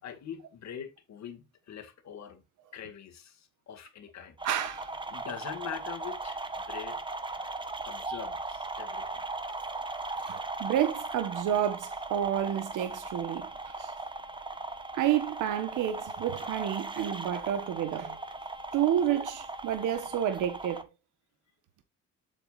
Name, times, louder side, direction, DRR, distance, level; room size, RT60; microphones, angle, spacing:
voice 1, 0.0-2.4 2.7-4.4 5.1-7.4 7.8-9.3, left 8 dB, 65° left, 2.2 m, -43 dB
sound 1, 4.4-20.8, right 2 dB, 15° right, 1.3 m, -38 dB
voice 2, 4.4-4.9 10.3-13.9 14.9-18.2 18.7-20.9, right 10 dB, 85° right, 1.3 m, -30 dB
8.0 x 7.8 x 2.5 m
cardioid pair, 90°, 30 cm